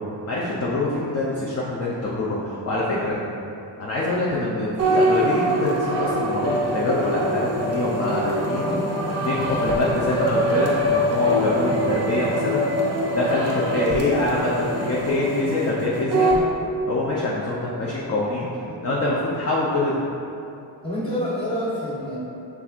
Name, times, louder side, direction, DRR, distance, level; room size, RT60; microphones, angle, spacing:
voice 1, 0.3-3.2 3.8-8.7 9.2-12.7 13.2-14.5 14.8-16.4 16.9-18.5 18.8-20.0, left 2 dB, 30° left, -6 dB, 0.5 m, -25 dB
sound 1, 4.8-16.4, equal, 30° right, 0.7 m, -23 dB
voice 2, 8.4-8.9 18.1-18.8 20.8-22.2, equal, 10° left, -10 dB, 1.3 m, -29 dB
5.8 x 3.4 x 2.4 m, 2.7 s
wide cardioid pair, 130°, 48 cm